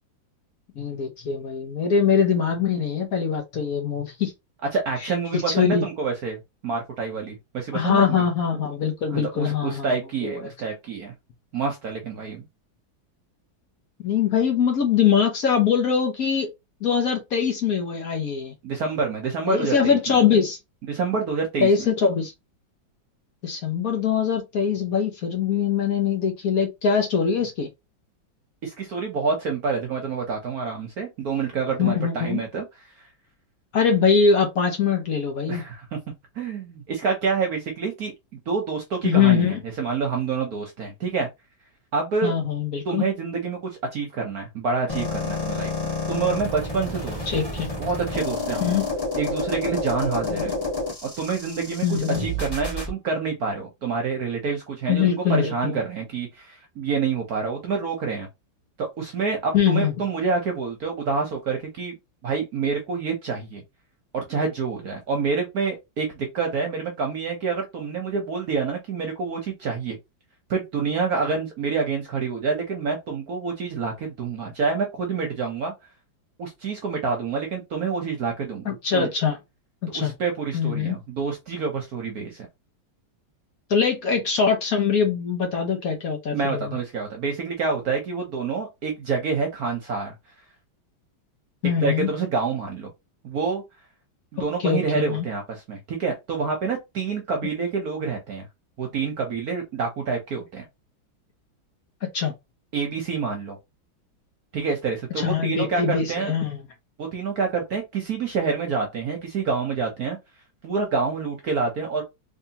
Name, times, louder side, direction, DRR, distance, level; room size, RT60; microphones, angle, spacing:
voice 1, 0.8-4.3 5.3-5.9 7.7-9.9 10.2-10.4 14.0-16.5 16.8-18.5 19.5-20.6 21.6-22.3 23.4-27.7 31.8-32.4 33.7-35.7 39.0-39.6 42.2-43.0 47.3-47.7 48.6-48.8 50.3-50.4 51.8-52.3 54.9-55.8 59.5-59.9 78.6-79.4 79.8-80.2 80.5-81.0 83.7-86.8 91.6-92.1 94.6-95.2 102.0-102.3 105.2-106.6, left 6 dB, 55° left, 1.1 m, -22 dB
voice 2, 4.7-8.3 9.1-11.1 11.5-12.5 18.6-20.2 20.9-21.7 28.6-32.6 33.0-33.1 35.5-36.0 36.3-38.1 38.5-41.3 41.9-42.3 42.9-47.4 47.8-48.8 49.2-50.5 51.0-58.3 58.8-61.9 62.2-63.6 64.1-70.0 70.5-75.7 76.4-79.1 79.9-82.5 86.3-90.1 91.8-92.9 93.2-93.6 94.3-98.5 98.8-100.6 102.7-103.6 104.5-106.3 107.0-110.2 110.6-112.0, right 5 dB, 60° right, 1.1 m, -27 dB
sound 1, 44.9-52.9, left 2 dB, 10° left, 1.6 m, -29 dB
3.5 x 3.3 x 2.8 m
omnidirectional pair, 2.2 m